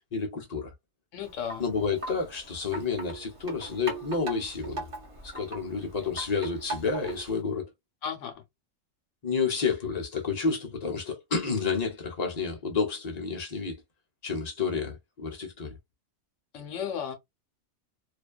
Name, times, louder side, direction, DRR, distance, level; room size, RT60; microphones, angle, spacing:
voice 1, 0.1-0.7 1.6-4.8 5.2-7.7 9.2-13.8 14.2-15.7, left 5 dB, 40° left, 0.8 m, -30 dB
voice 2, 1.1-1.7 8.0-8.4 16.5-17.1, left 8 dB, 75° left, 1.0 m, -34 dB
Wind chime, 1.2-7.4, right 3 dB, 30° right, 0.8 m, -40 dB
2.5 x 2.2 x 2.2 m
omnidirectional pair, 1.3 m